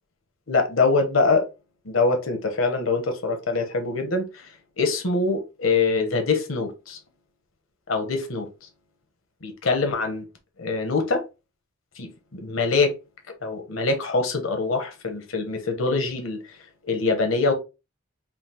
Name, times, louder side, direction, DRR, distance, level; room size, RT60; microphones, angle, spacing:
voice 1, 0.5-1.5 1.8-4.5 4.8-7.0 7.9-8.7 9.4-10.2 10.6-11.2 12.0-12.9 13.3-16.6 16.8-17.5, left 3 dB, 75° left, 1.0 m, -24 dB
5.7 x 2.4 x 2.9 m
head